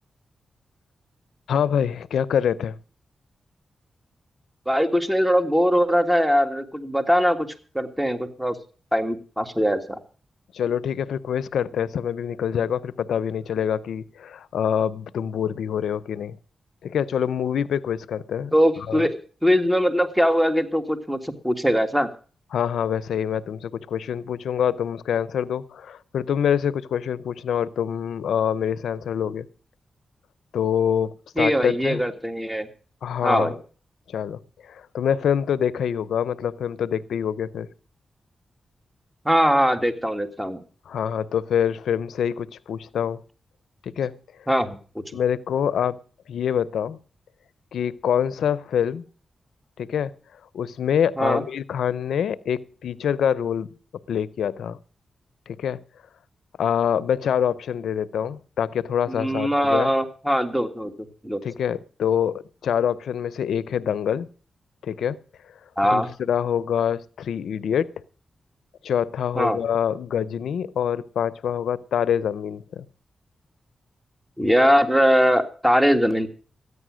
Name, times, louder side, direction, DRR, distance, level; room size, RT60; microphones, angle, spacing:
voice 1, 1.5-2.8 10.5-16.4 16.8-18.5 18.9-19.1 22.5-29.5 30.5-32.0 33.0-33.5 34.1-37.7 40.9-43.2 43.8-44.1 45.1-46.0 46.3-47.0 47.7-49.0 49.8-50.1 50.5-53.7 54.1-54.8 55.5-55.8 56.6-59.9 61.4-64.3 64.8-65.2 65.8-67.9 68.8-72.8, left 8 dB, 85° left, 0.5 m, -25 dB
voice 2, 4.7-7.5 7.7-8.6 8.9-10.0 18.5-22.1 31.4-32.7 33.2-33.6 39.3-40.6 44.5-44.8 51.2-51.4 59.1-61.4 65.8-66.1 69.4-69.6 74.4-76.3, equal, 10° right, 1.9 m, -21 dB
13.5 x 9.6 x 6.2 m
cardioid pair, 50°, 0 cm